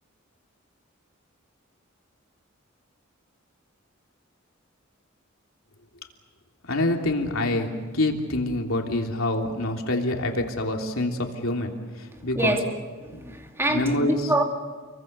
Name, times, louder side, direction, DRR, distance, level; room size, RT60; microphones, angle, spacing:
voice 1, 6.7-7.7 7.9-12.6 13.1-13.2 13.7-14.3, left 1 dB, 85° left, 2 dB, 3.1 m, -26 dB
voice 2, 13.1-14.4, right 1 dB, 10° right, 2 dB, 2.5 m, -25 dB
30.0 x 23.5 x 6.7 m, 1.5 s
head